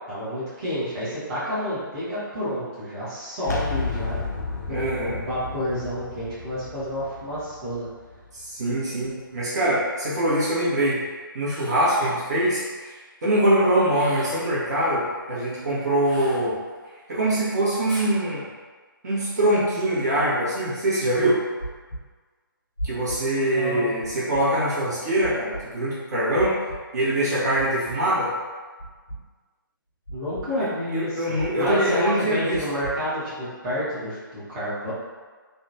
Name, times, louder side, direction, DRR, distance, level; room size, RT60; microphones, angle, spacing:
voice 1, 0.1-4.2 4.7-4.9 5.2-7.9 23.2-23.9 30.1-34.9, equal, 25° right, -11 dB, 0.9 m, -29 dB
sound 1, 3.4-9.1, left 4 dB, 50° left, 0.4 m, -33 dB
voice 2, 4.7-5.2 8.3-11.0 11.3-16.6 17.1-18.4 19.0-21.4 22.8-26.5 26.9-28.3 30.6-30.7 30.9-32.6, right 1 dB, 50° right, -9 dB, 1.0 m, -23 dB
sound 2, 11.4-12.2 13.8-14.5 16.0-16.9 17.9-18.2, equal, ahead, 1.0 m, -41 dB
sound 3, 21.6-22.0 22.8-23.2 24.0-24.4 25.2-25.6 26.4-26.8 27.6-28.0 28.8-29.2 30.1-30.5 31.4-31.8 32.5-32.9, right 1 dB, 85° left, 0.8 m, -34 dB
2.7 x 2.2 x 2.7 m, 1.4 s
figure-of-eight pair, 135°, 12 cm